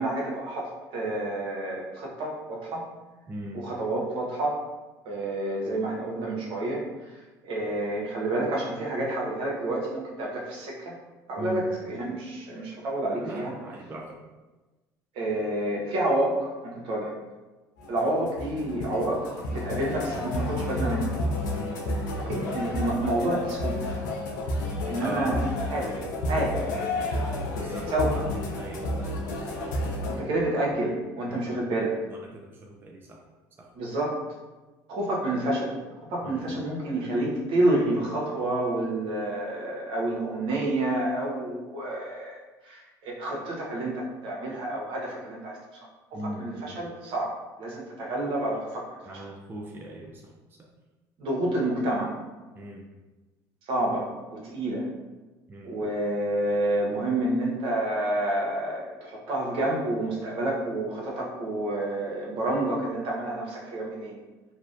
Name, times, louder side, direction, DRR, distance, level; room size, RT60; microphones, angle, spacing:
voice 1, 0.0-2.9 3.5-4.6 5.0-6.8 7.4-10.9 11.3-13.5 15.2-17.1 17.9-19.2 19.5-21.1 22.2-24.0 24.9-25.4 25.7-25.9 26.3-26.6 27.9-28.2 29.8-31.9 33.7-34.2 34.9-35.7 36.1-45.6 46.4-47.3 47.6-49.2 51.2-52.1 53.7-54.8 55.6-64.2, right 1 dB, 65° right, -3 dB, 0.7 m, -29 dB
voice 2, 3.3-3.7 11.4-11.7 13.2-14.2 21.5-21.8 25.0-25.4 27.5-28.2 28.5-29.7 31.3-31.6 32.1-33.2 33.6-33.7 36.2-36.5 46.1-46.8 49.1-50.3 52.6-52.9 55.5-56.0, right 1 dB, 20° right, -1 dB, 0.4 m, -40 dB
sound 1, 17.8-30.2, left 1 dB, 90° left, 0.4 m, -31 dB
2.5 x 2.0 x 2.5 m, 1.2 s
hypercardioid pair, 75°, 10 cm